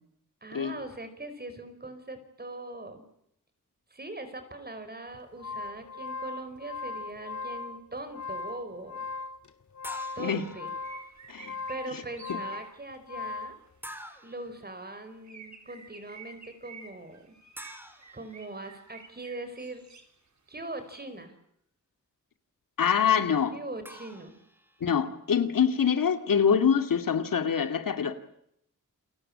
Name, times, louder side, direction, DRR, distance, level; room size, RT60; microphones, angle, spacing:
voice 1, 0.4-3.0 3.9-9.0 10.1-10.7 11.7-13.5 14.2-17.2 18.1-19.9 20.5-21.4 23.5-24.4, right 2 dB, 30° right, 10 dB, 4.9 m, -41 dB
sound 1, 5.1-13.6, left 4 dB, 65° left, 2.4 m, -39 dB
sound 2, 9.8-11.2 13.8-14.6 17.6-19.1 23.8-25.0, equal, 5° right, 3.4 m, -47 dB
sound 3, 10.8-12.8 14.7-14.8 15.2-20.1 20.6-20.7 21.1-21.2, right 5 dB, 60° right, 4.5 m, -50 dB
voice 2, 22.8-23.6 24.8-28.1, left 7 dB, 90° left, 8 dB, 2.4 m, -25 dB
29.0 x 22.5 x 8.7 m, 0.74 s
wide cardioid pair, 140°, 32 cm